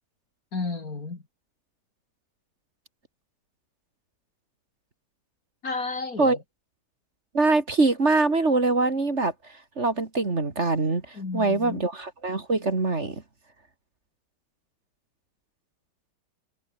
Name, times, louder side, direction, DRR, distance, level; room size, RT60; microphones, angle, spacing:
voice 1, 0.5-1.2 5.6-6.4 11.1-11.8, left 3 dB, 55° left, 3.5 m, -32 dB
voice 2, 7.3-9.3 9.8-11.0 11.3-13.2, right 3 dB, 40° right, 2.8 m, -23 dB
omnidirectional pair, 1.8 m